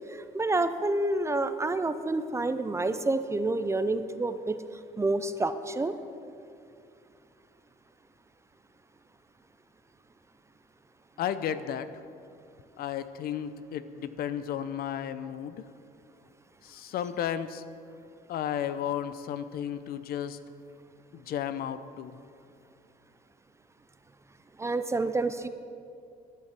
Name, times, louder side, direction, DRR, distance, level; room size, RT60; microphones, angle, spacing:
voice 1, 0.1-4.6 5.0-5.9 24.6-25.5, right 2 dB, 15° right, 11 dB, 0.5 m, -28 dB
voice 2, 11.2-11.9 12.8-15.6 16.6-17.6 18.3-20.4 21.1-22.1, left 9 dB, 65° left, 13 dB, 0.6 m, -33 dB
11.0 x 10.5 x 5.9 m, 2.5 s
cardioid pair, 110°, 17 cm